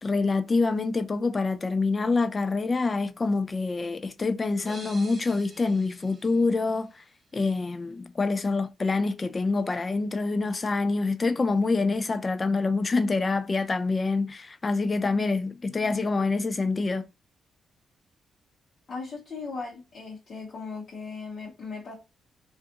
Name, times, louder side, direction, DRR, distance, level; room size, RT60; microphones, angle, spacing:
voice 1, 0.0-7.0 7.3-17.1, left 3 dB, 30° left, 0.3 m, -26 dB
sound 1, 4.7-7.4, right 2 dB, 20° right, 0.7 m, -48 dB
voice 2, 18.9-22.0, left 4 dB, 45° left, 0.9 m, -37 dB
2.6 x 2.4 x 2.4 m
cardioid pair, 110°, 0 cm